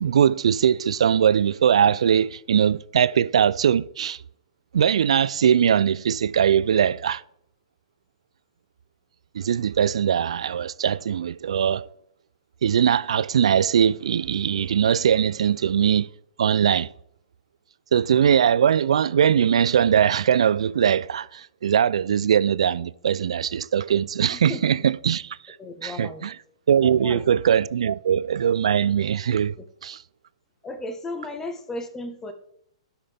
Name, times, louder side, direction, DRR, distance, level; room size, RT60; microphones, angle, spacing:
voice 1, 0.0-4.2 4.7-7.2 9.3-11.9 12.6-16.1 16.4-16.9 17.9-25.6 25.8-26.4 26.7-29.5 29.8-30.0, right 8 dB, 70° right, 0.3 m, -21 dB
voice 2, 25.6-26.3 26.8-27.2 30.6-32.3, left 2 dB, 15° left, 1.1 m, -35 dB
12.5 x 6.0 x 3.5 m
hypercardioid pair, 120°, 3 cm